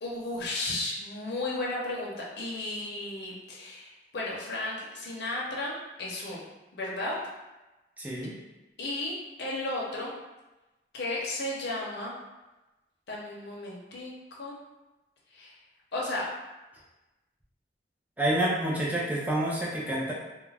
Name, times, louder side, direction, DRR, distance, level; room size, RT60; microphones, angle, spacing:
voice 1, 0.0-6.4 6.7-7.1 8.8-9.1 9.4-10.1 10.9-12.1 13.1-14.1 14.4-14.6 15.3-15.5 15.9-16.2, left 2 dB, 70° left, -4 dB, 0.6 m, -34 dB
voice 2, 8.0-8.3 18.2-20.1, right 1 dB, 10° right, -5 dB, 0.4 m, -28 dB
2.3 x 2.0 x 3.2 m, 1.1 s
head